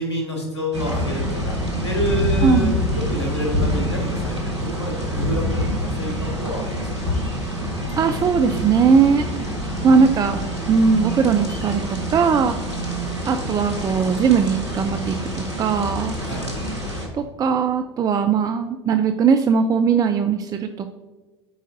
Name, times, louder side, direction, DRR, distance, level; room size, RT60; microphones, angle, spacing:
voice 1, 0.0-6.1 6.4-7.2 16.2-16.5, equal, 85° left, 0 dB, 1.7 m, -29 dB
sound 1, 0.7-17.1, equal, 90° right, 1.5 m, -26 dB
voice 2, 2.4-2.7 8.0-9.2 9.8-10.4 10.7-12.6 13.3-16.2 17.1-20.9, right 6 dB, 25° right, 7 dB, 0.5 m, -19 dB
12.5 x 5.1 x 2.6 m, 1.3 s
figure-of-eight pair, 75°, 14 cm